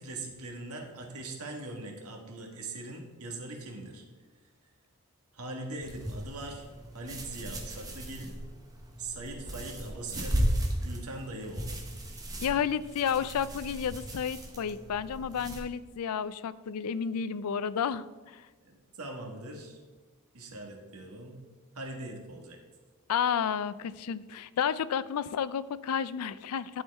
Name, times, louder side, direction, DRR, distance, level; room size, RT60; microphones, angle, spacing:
voice 1, 0.0-4.0 5.3-6.7 6.9-8.3 9.0-10.6 10.8-11.8 19.0-19.8 20.3-21.4 21.7-22.6, right 2 dB, 85° right, 3 dB, 1.5 m, -41 dB
sound 1, 5.8-15.6, equal, 15° right, 1.1 m, -36 dB
voice 2, 12.4-18.5 23.1-26.8, left 7 dB, 90° left, 17 dB, 0.4 m, -31 dB
11.0 x 4.4 x 4.6 m, 1.4 s
head